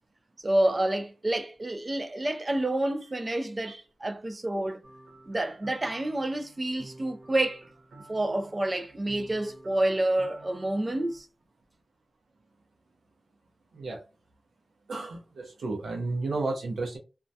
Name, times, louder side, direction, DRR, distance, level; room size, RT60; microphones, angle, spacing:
voice 1, 0.4-4.8 5.3-7.6 8.1-11.3, right 1 dB, 20° right, 0.3 m, -28 dB
sound 1, 4.8-11.2, right 2 dB, 90° right, 0.9 m, -51 dB
voice 2, 14.9-17.0, right 3 dB, 65° right, 0.6 m, -32 dB
2.2 x 2.1 x 2.6 m
wide cardioid pair, 160°, 0 cm